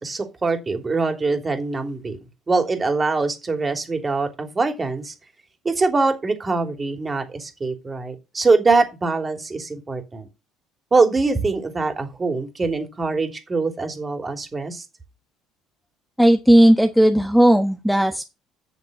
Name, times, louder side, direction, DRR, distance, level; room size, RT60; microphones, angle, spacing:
voice 1, 0.0-2.2 2.5-5.1 5.6-10.3 10.9-14.8, right 3 dB, 30° right, 3.1 m, -23 dB
voice 2, 16.2-18.2, right 1 dB, ahead, 1.2 m, -15 dB
9.3 x 6.7 x 5.3 m
hypercardioid pair, 65°, 0 cm